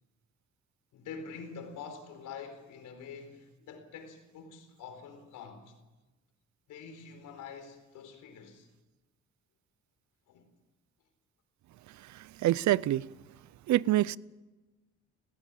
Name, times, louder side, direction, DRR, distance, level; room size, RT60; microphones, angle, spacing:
voice 1, 0.9-5.7 6.7-8.7 10.3-10.5, left 5 dB, 85° left, 4.2 m, -46 dB
voice 2, 12.0-13.1 13.7-14.2, right 15 dB, 70° right, 0.6 m, -27 dB
18.0 x 18.0 x 8.6 m
cardioid pair, 90°, 30 cm